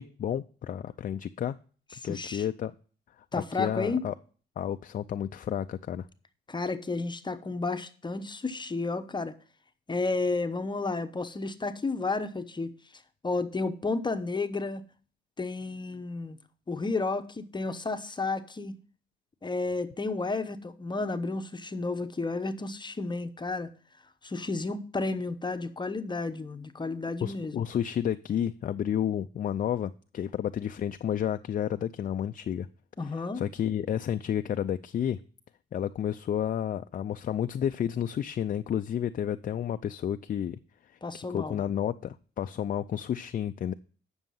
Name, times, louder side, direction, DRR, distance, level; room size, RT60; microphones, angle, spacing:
voice 1, 0.0-1.6 2.0-2.7 3.3-4.1 4.6-6.1 27.2-32.7 33.0-35.2 35.7-40.6 41.1-43.7, left 9 dB, 45° left, 0.4 m, -31 dB
voice 2, 2.1-2.4 3.3-4.1 6.5-9.4 9.9-12.7 13.2-14.8 15.4-16.4 16.7-18.7 19.4-23.7 24.2-27.7 33.0-33.4 41.0-41.6, left 3 dB, 25° left, 0.8 m, -32 dB
9.0 x 6.2 x 5.5 m
cardioid pair, 90°, 20 cm